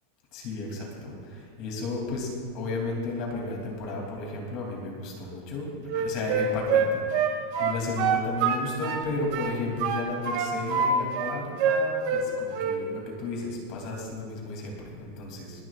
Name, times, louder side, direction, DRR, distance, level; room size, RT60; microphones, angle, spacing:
voice 1, 0.3-15.6, left 3 dB, 40° left, -1 dB, 3.0 m, -33 dB
Wind instrument woodwind instrument, 5.9-9.0 9.3-10.9 11.1-12.3 12.5-12.8, right 7 dB, 50° right, 1.9 m, -25 dB
26.0 x 11.0 x 2.5 m, 2.4 s
supercardioid pair, 170°, 0 cm